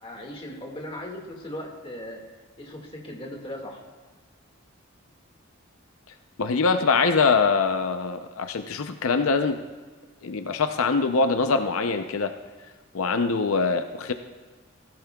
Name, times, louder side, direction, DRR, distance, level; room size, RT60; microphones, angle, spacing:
voice 1, 0.0-2.2 2.6-3.8, left 1 dB, 25° left, 0 dB, 1.9 m, -38 dB
voice 2, 6.4-9.6 10.2-12.3 12.9-14.1, left 4 dB, 85° left, 8 dB, 0.6 m, -23 dB
17.0 x 15.0 x 2.3 m, 1.4 s
head